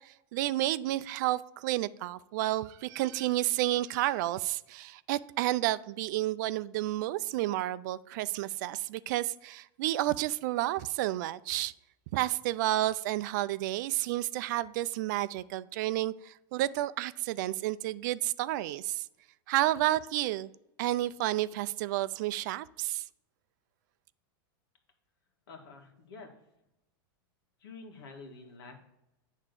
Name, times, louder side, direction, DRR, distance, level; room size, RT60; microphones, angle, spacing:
voice 1, 0.1-11.7 12.1-19.0 19.5-20.5 20.8-23.0, right 15 dB, 55° right, 0.4 m, -31 dB
voice 2, 25.5-26.3 27.6-28.8, left 4 dB, 90° left, 1.9 m, -48 dB
8.8 x 3.6 x 6.7 m
supercardioid pair, 155°, 12 cm